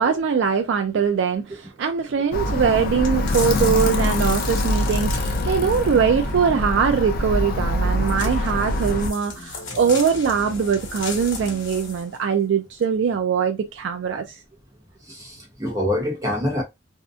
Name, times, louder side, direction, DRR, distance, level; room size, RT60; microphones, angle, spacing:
voice 1, 0.0-14.2, right 6 dB, 70° right, 0.3 m, -22 dB
Alarm, 2.3-9.1, left 1 dB, 50° left, 0.4 m, -24 dB
sound 1, 3.0-6.0 8.0-12.2 12.8-12.9, left 3 dB, 90° left, 1.0 m, -35 dB
voice 2, 15.1-16.6, left 1 dB, 20° right, 0.9 m, -26 dB
2.6 x 2.1 x 2.3 m
head